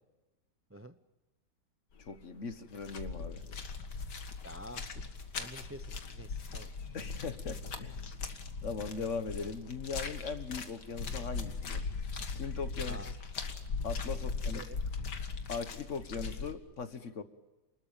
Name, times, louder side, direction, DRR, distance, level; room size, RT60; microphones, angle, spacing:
sound 1, 2.0-2.2 2.5-16.5, left 4 dB, 75° left, 2.4 m, -39 dB
voice 1, 2.0-3.5 6.9-8.1 8.6-11.9 12.3-13.0 13.8-14.6 15.5-17.2, left 5 dB, 45° left, 11 dB, 1.7 m, -39 dB
voice 2, 4.4-6.7 12.9-13.1 14.1-14.3 14.5-14.8, equal, 20° right, 11 dB, 0.3 m, -49 dB
29.0 x 20.5 x 9.0 m, 1.1 s
omnidirectional pair, 1.8 m